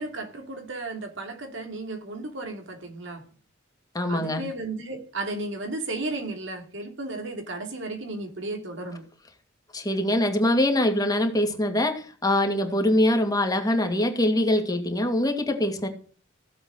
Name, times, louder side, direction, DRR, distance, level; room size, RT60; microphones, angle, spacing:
voice 1, 0.0-3.2 4.0-9.0 13.8-14.0, right 2 dB, 65° right, 2.8 m, -34 dB
voice 2, 3.9-4.4 9.7-15.9, left 1 dB, 20° left, 2.4 m, -23 dB
16.0 x 7.8 x 6.3 m
head